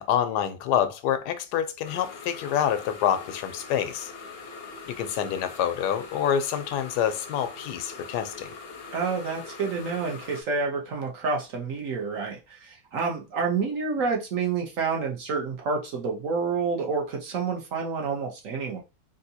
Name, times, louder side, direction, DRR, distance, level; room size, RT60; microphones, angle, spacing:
voice 1, 0.0-4.1 4.9-8.5, left 9 dB, 90° left, 1.2 m, -27 dB
sound 1, 1.8-10.4, left 4 dB, 60° left, 0.6 m, -42 dB
voice 2, 8.9-18.8, right 5 dB, 60° right, 1.1 m, -29 dB
3.5 x 2.6 x 2.7 m
omnidirectional pair, 1.7 m